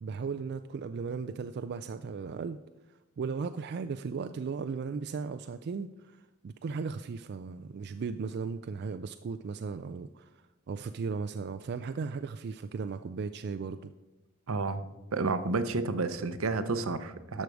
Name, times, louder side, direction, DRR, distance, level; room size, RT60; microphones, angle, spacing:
voice 1, 0.0-2.6 3.2-6.2 6.4-10.3 10.7-13.9, right 5 dB, 55° right, 9 dB, 0.3 m, -36 dB
voice 2, 14.5-14.8 15.1-17.4, right 3 dB, 80° right, 11 dB, 0.7 m, -30 dB
12.0 x 6.4 x 4.7 m, 1.1 s
head